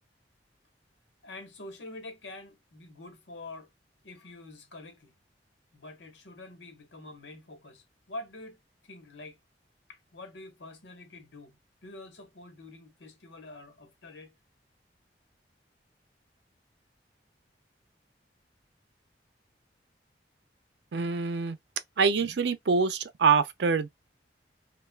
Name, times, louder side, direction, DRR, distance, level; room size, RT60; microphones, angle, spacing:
voice 1, 1.2-3.7 4.0-5.1 5.7-9.4 9.9-14.3, left 2 dB, 90° left, 1.1 m, -46 dB
voice 2, 20.9-21.6 22.0-23.9, right 5 dB, 75° right, 0.5 m, -25 dB
3.1 x 2.3 x 2.2 m
head